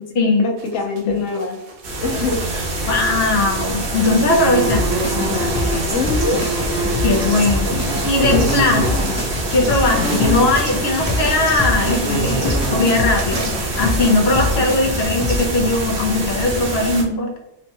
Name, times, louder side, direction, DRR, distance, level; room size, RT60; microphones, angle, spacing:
voice 1, 0.4-1.6 2.0-2.4 5.9-6.4 8.3-8.7 12.0-12.1, left 3 dB, 90° left, 1 dB, 1.1 m, -23 dB
sound 1, 0.6-4.0 4.3-9.8 10.0-12.0 12.3-12.7 13.1-15.0, right 3 dB, 80° right, 1.0 m, -37 dB
sound 2, 1.8-17.0, right 2 dB, 50° right, 0.9 m, -24 dB
voice 2, 2.9-5.6 7.0-17.3, left 2 dB, 60° left, 1 dB, 0.9 m, -19 dB
sound 3, 4.7-15.7, left 2 dB, 25° left, 0.3 m, -26 dB
3.1 x 2.2 x 2.8 m, 0.88 s
omnidirectional pair, 1.3 m